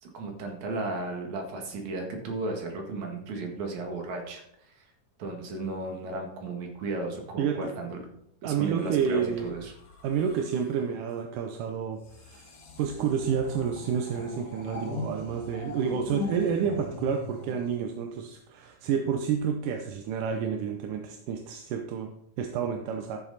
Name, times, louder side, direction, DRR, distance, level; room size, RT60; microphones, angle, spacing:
voice 1, 0.0-4.7 5.2-8.1 8.4-9.7, right 2 dB, 65° right, 2 dB, 3.1 m, -35 dB
voice 2, 8.4-9.6 10.0-12.5 12.8-23.2, right 7 dB, 85° right, 5 dB, 2.3 m, -29 dB
sound 1, 8.8-10.9 12.0-18.4 19.3-19.6, left 4 dB, 65° left, 3.2 m, -41 dB
13.5 x 7.1 x 4.1 m, 0.75 s
omnidirectional pair, 3.6 m